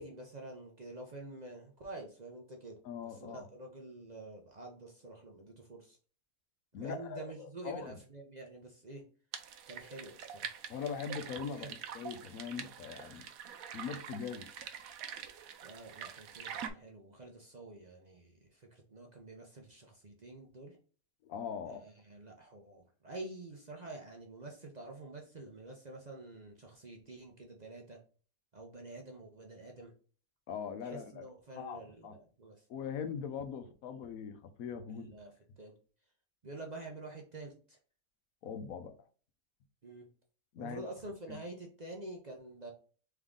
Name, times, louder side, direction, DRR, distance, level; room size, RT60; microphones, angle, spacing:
voice 1, 0.0-2.7 3.0-6.0 6.8-9.0 9.7-10.6 11.5-11.7 15.6-20.8 21.7-28.0 28.5-29.9 30.8-32.7 34.9-35.7 36.4-37.8 39.8-40.1 40.6-42.7, right 2 dB, 40° right, 0.7 m, -48 dB
voice 2, 2.8-3.5 6.7-7.2 7.6-7.9 10.7-11.7 11.9-13.2 13.7-14.5 21.2-21.8 30.5-31.2 31.6-32.1 32.7-35.1 38.4-38.9 40.5-40.9 41.3-41.4, left 7 dB, 80° left, 1.1 m, -41 dB
sound 1, 9.3-16.7, right 8 dB, 80° right, 1.1 m, -45 dB
3.7 x 3.5 x 3.6 m
omnidirectional pair, 1.5 m